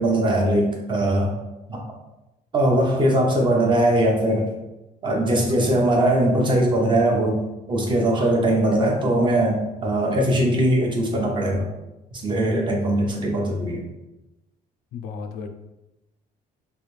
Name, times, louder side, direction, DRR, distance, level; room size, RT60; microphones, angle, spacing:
voice 1, 0.0-1.4 1.7-1.8 2.5-4.5 5.0-7.4 7.7-11.7 12.1-13.8, right 1 dB, 30° right, -1 dB, 0.7 m, -20 dB
voice 2, 14.9-15.5, left 5 dB, 75° left, 5 dB, 0.4 m, -34 dB
3.2 x 2.6 x 3.2 m, 0.98 s
cardioid pair, 150°, 16 cm